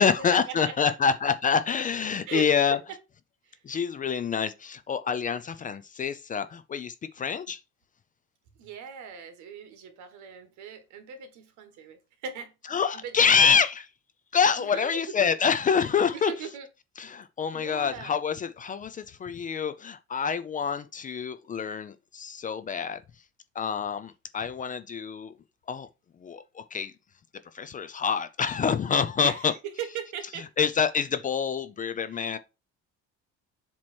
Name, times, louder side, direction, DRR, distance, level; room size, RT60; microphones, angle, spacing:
voice 1, 0.0-2.8 3.6-7.6 12.7-13.8 14.3-16.3 17.0-23.0 23.6-25.3 25.7-25.9 26.2-26.9 27.5-29.5 30.6-32.4, left 6 dB, 25° left, 0.4 m, -26 dB
voice 2, 8.6-12.5 12.9-13.5 14.6-15.3 16.1-16.7 17.5-18.2 29.2-30.5 32.1-32.3, right 7 dB, 70° right, 1.6 m, -39 dB
7.5 x 3.0 x 4.3 m
cardioid pair, 150°, 30 cm